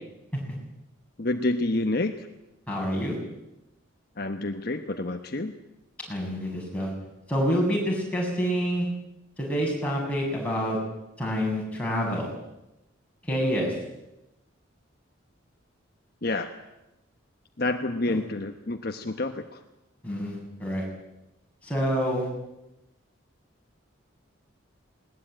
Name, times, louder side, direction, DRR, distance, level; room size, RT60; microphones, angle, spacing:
voice 1, 1.2-2.1 4.2-5.5 16.2-16.5 17.6-19.4, left 2 dB, 50° left, 6 dB, 1.1 m, -28 dB
voice 2, 2.7-3.1 6.1-6.9 7.3-8.9 9.4-10.8 11.2-12.3 13.3-13.7 18.1-18.2 20.0-20.8 21.6-22.3, equal, 5° left, -3 dB, 7.4 m, -27 dB
20.0 x 20.0 x 9.0 m, 0.94 s
head